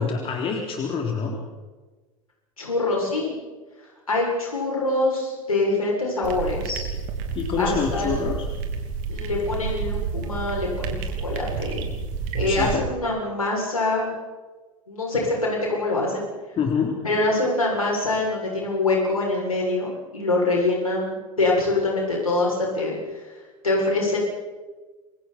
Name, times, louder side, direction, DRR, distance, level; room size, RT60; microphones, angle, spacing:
voice 1, 0.0-1.4 7.3-8.4 12.4-12.8 16.6-17.0, left 6 dB, 30° left, 1 dB, 3.8 m, -26 dB
voice 2, 2.6-3.3 4.1-6.8 7.6-8.2 9.1-11.8 12.3-14.1 14.9-16.3 17.0-23.2 23.6-24.2, left 2 dB, 80° left, -2 dB, 7.6 m, -24 dB
sound 1, 6.2-12.8, right 5 dB, 45° right, 3.6 m, -30 dB
29.5 x 23.5 x 4.6 m, 1.3 s
figure-of-eight pair, 85°, 18 cm